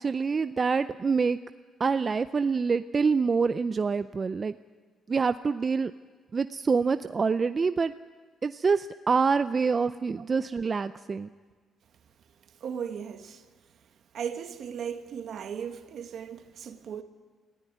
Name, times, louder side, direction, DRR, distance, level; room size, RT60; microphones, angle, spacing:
voice 1, 0.0-1.4 1.8-4.6 5.1-5.9 6.3-7.9 8.4-11.3, right 5 dB, 35° right, 0.5 m, -26 dB
voice 2, 12.6-13.4 14.1-17.0, right 7 dB, 65° right, 1.4 m, -36 dB
18.5 x 15.5 x 9.4 m
cardioid pair, 90°, 0 cm